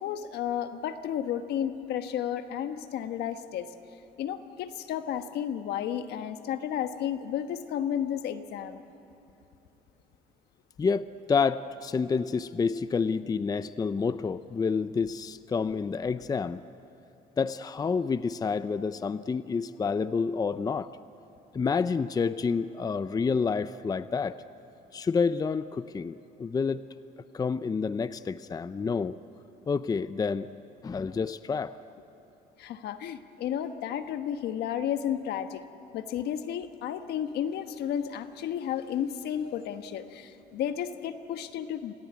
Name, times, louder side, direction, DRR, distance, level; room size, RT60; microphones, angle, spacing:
voice 1, 0.0-3.7 4.2-8.8 32.6-35.6 35.9-41.9, left 9 dB, 75° left, 9 dB, 1.3 m, -32 dB
voice 2, 10.8-16.6 17.4-20.9 21.5-24.4 24.9-26.8 27.3-29.2 29.7-30.5 30.8-31.8, left 5 dB, 20° left, 14 dB, 0.5 m, -29 dB
27.0 x 18.0 x 9.6 m, 2.9 s
cardioid pair, 110°, 17 cm